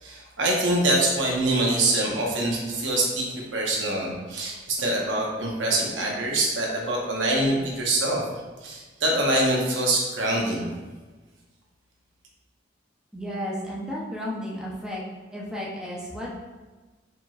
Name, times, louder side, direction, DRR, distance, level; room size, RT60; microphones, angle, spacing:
voice 1, 0.0-8.2 8.6-10.7, right 1 dB, 80° right, -2 dB, 0.8 m, -24 dB
voice 2, 13.1-15.0 15.3-16.3, equal, 5° right, -5 dB, 0.6 m, -33 dB
4.5 x 3.0 x 2.3 m, 1.3 s
head